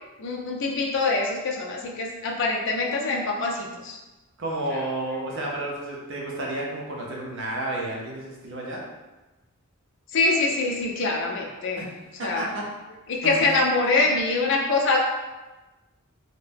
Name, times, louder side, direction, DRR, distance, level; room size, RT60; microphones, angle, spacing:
voice 1, 0.2-4.0 4.7-4.8 10.1-11.8 12.2-12.6 13.1-15.0, left 3 dB, 55° left, -1 dB, 0.4 m, -24 dB
voice 2, 4.4-8.8 11.7-11.9 12.2-12.6 13.2-13.5, right 1 dB, 55° right, -3 dB, 0.6 m, -31 dB
2.7 x 2.1 x 3.3 m, 1.1 s
head